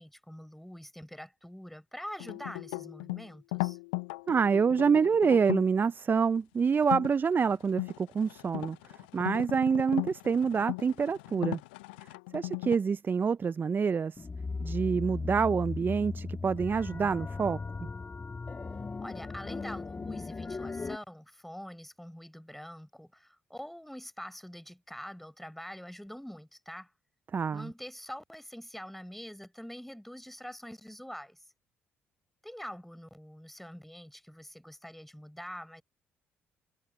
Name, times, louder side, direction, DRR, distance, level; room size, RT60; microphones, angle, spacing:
voice 1, 0.0-3.8 19.0-26.9 27.5-31.4 32.4-35.8, equal, 5° left, 6.8 m, -45 dB
sound 1, 2.2-5.7 6.8-7.1 7.6-12.8, left 27 dB, 85° left, 0.4 m, -37 dB
voice 2, 4.3-8.8 9.1-11.6 12.3-14.3 14.6-17.9 27.3-27.7, right 6 dB, 40° right, 0.5 m, -27 dB
sound 2, 14.2-21.0, left 4 dB, 30° left, 3.3 m, -37 dB
hypercardioid pair, 50°, 5 cm